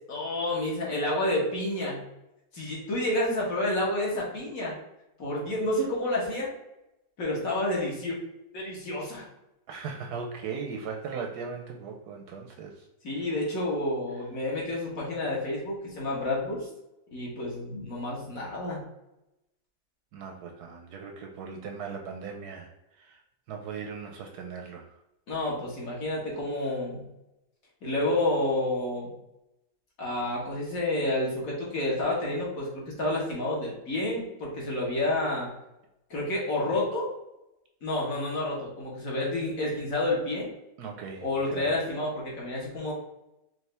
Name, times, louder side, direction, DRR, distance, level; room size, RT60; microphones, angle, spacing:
voice 1, 0.1-2.0 2.5-4.7 5.2-6.5 7.2-8.1 8.5-9.2 13.0-16.7 17.1-18.8 25.3-27.0 27.8-29.1 30.0-35.5 36.1-37.1 37.8-40.5 41.2-42.9, left 1 dB, 50° left, -4 dB, 1.6 m, -29 dB
voice 2, 9.7-12.9 20.1-22.7 23.0-23.2 23.5-24.9 40.8-41.7, right 5 dB, 70° right, 2 dB, 1.0 m, -38 dB
4.8 x 2.5 x 3.2 m, 0.90 s
omnidirectional pair, 1.9 m